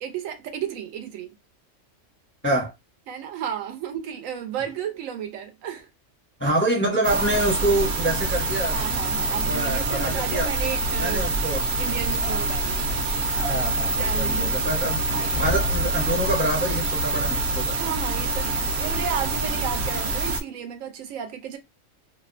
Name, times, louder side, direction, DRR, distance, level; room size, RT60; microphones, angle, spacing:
voice 1, 0.0-1.3 3.1-5.9 8.7-11.3 11.8-12.9 13.9-14.7 15.1-15.3 17.7-21.6, right 8 dB, 80° right, 1.0 m, -33 dB
voice 2, 6.4-8.8 9.1-10.5 11.0-11.6 13.3-17.8, right 1 dB, 15° left, 0.4 m, -26 dB
sound 1, 7.0-20.4, right 2 dB, 65° right, 0.7 m, -26 dB
sound 2, 15.3-17.0, left 2 dB, 65° left, 0.6 m, -31 dB
2.7 x 2.1 x 2.4 m
omnidirectional pair, 1.4 m